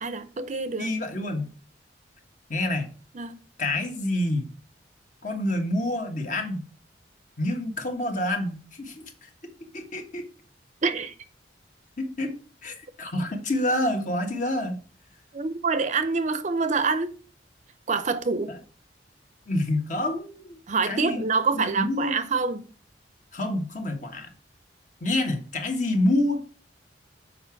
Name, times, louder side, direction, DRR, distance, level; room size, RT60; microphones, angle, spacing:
voice 1, 0.0-0.9 3.1-3.3 10.8-11.1 15.3-17.1 17.9-18.5 20.7-22.6, right 4 dB, 40° right, 0.6 m, -26 dB
voice 2, 0.8-1.5 2.5-2.9 3.6-4.5 5.2-6.7 7.4-9.0 9.7-10.3 12.0-12.3 12.6-14.8 18.5-18.6 19.5-20.6 20.9-21.2 21.5-22.2 23.3-24.3 25.0-26.4, left 1 dB, 45° left, 1.5 m, -27 dB
6.8 x 4.9 x 5.8 m
head